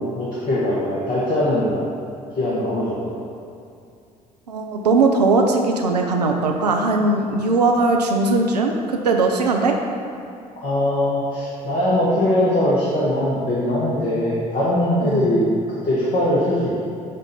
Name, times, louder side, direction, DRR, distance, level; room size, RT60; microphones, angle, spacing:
voice 1, 0.0-1.9 2.4-3.1 10.6-15.6 15.8-16.8, left 1 dB, 45° left, -7 dB, 1.3 m, -21 dB
voice 2, 4.5-9.8 15.0-15.3, right 3 dB, 85° right, 2 dB, 0.5 m, -19 dB
7.3 x 2.6 x 5.6 m, 2.5 s
figure-of-eight pair, 50°, 20 cm